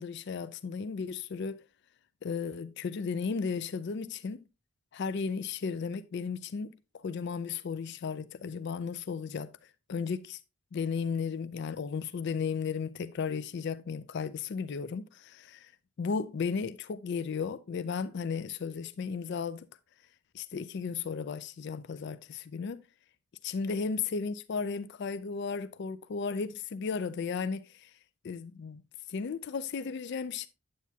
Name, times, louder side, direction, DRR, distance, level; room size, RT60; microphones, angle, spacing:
voice 1, 0.0-1.6 2.2-4.4 4.9-10.4 10.7-15.7 16.0-19.7 20.3-22.8 23.4-27.9 28.2-28.8 29.1-30.5, left 5 dB, 50° left, 0.3 m, -35 dB
9.4 x 8.2 x 2.7 m
head